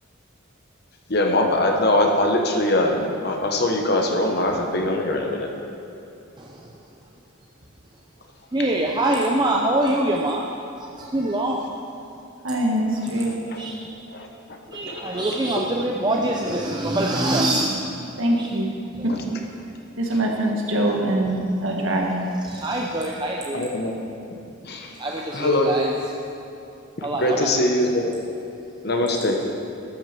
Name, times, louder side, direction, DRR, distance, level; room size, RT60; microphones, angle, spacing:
voice 1, 1.1-5.5 13.5-13.7 14.1-14.3 14.9-15.3 15.6-15.7 23.5-23.9 24.6-24.9 25.3-25.7 27.0-28.1 28.8-29.4, left 1 dB, 50° left, 2 dB, 1.2 m, -22 dB
voice 2, 6.4-6.7 8.5-10.5 10.8-11.8 13.6-13.9 14.7-18.5 22.4-23.7 25.0-25.9 27.0-27.7, right 1 dB, 20° right, -1 dB, 0.5 m, -24 dB
voice 3, 12.4-13.3 18.2-18.7 19.0-19.1 20.0-22.3, right 1 dB, 75° right, 0 dB, 1.7 m, -23 dB
12.5 x 6.4 x 6.8 m, 2.8 s
head